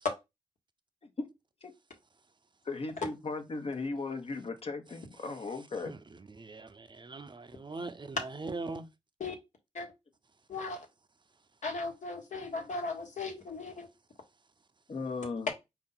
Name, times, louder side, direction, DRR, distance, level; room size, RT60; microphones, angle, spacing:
voice 1, 2.6-5.9 14.9-15.5, left 3 dB, 50° left, 1.0 m, -37 dB
voice 2, 5.9-8.9, right 3 dB, 35° right, 0.6 m, -41 dB
voice 3, 10.5-10.9 11.6-13.9, left 3 dB, 65° left, 1.4 m, -37 dB
4.3 x 2.7 x 3.9 m
supercardioid pair, 45°, 13 cm